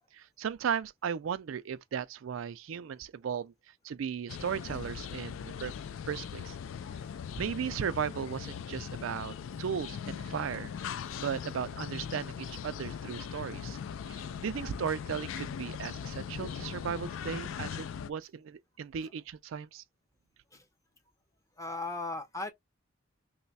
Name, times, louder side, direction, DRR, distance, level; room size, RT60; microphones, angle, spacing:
voice 1, 0.1-3.5 3.8-5.7 6.1-6.6 7.4-10.7 11.2-13.8 14.1-19.8, right 7 dB, 75° right, 0.4 m, -36 dB
sound 1, 4.3-18.1, left 7 dB, 75° left, 0.3 m, -40 dB
voice 2, 21.6-22.5, left 2 dB, 15° left, 0.6 m, -38 dB
3.1 x 2.2 x 4.0 m
head